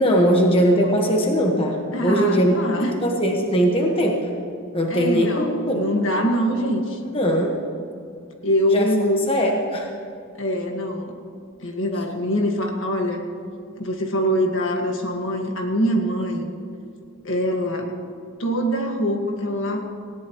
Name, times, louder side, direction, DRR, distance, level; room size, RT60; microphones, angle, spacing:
voice 1, 0.0-4.3 4.7-5.9 7.1-7.6 8.7-8.9 9.3-9.9, equal, 25° left, 0 dB, 1.4 m, -20 dB
voice 2, 1.9-3.1 4.9-7.0 8.4-9.3 10.4-11.2 11.6-13.3 13.8-16.5 17.2-17.9 18.4-19.8, equal, 65° left, 2 dB, 1.8 m, -23 dB
19.0 x 17.5 x 3.1 m, 2.4 s
head